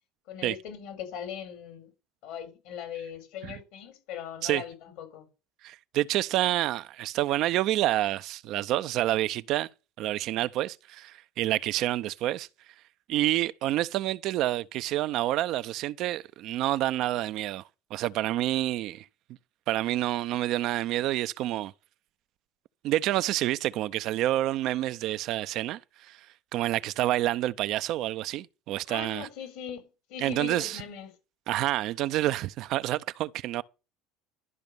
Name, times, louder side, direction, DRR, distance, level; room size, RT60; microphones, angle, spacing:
voice 1, 0.3-1.9 2.2-5.3 28.9-31.1, left 8 dB, 70° left, 4.4 m, -40 dB
voice 2, 5.6-9.7 10.0-12.5 13.1-17.6 17.9-19.1 19.7-21.7 22.8-26.2 26.5-29.3 30.2-30.8 31.5-33.6, right 14 dB, 60° right, 0.5 m, -28 dB
12.5 x 5.2 x 6.8 m
hypercardioid pair, 80°, 0 cm